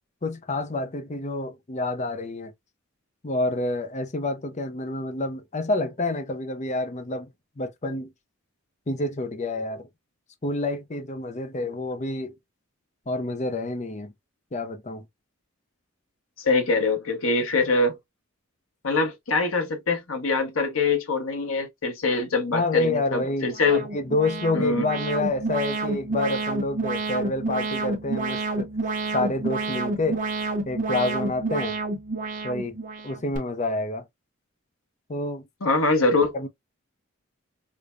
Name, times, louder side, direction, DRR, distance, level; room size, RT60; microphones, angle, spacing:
voice 1, 0.2-2.5 3.2-8.1 8.9-9.9 10.4-12.3 13.1-14.1 14.5-15.1 22.5-28.7 29.1-30.2 30.6-31.8 32.4-32.8 33.0-34.1 35.1-35.5 36.3-36.5, left 2 dB, 35° left, 0.6 m, -28 dB
voice 2, 16.4-18.0 18.8-23.8 24.5-24.8 35.6-36.3, left 3 dB, 80° left, 1.2 m, -23 dB
Alarm, 23.5-33.4, right 3 dB, 40° right, 1.1 m, -29 dB
5.0 x 2.2 x 2.5 m
head